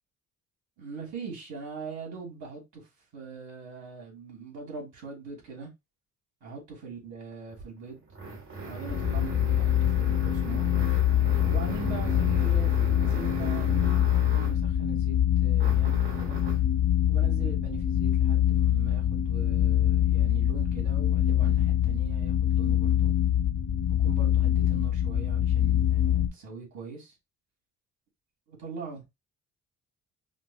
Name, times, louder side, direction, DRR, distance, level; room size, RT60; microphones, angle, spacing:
voice 1, 0.8-2.9 3.1-5.7 6.4-8.0 8.7-10.7 11.4-16.4 17.1-23.1 24.0-27.1 28.5-29.1, right 5 dB, 70° right, 2.8 m, -41 dB
sound 1, 7.5-14.7 15.6-16.7, right 3 dB, 45° right, 1.4 m, -38 dB
sound 2, 8.9-26.3, left 11 dB, 55° left, 0.9 m, -24 dB
5.1 x 2.9 x 2.3 m
cardioid pair, 90°, 30 cm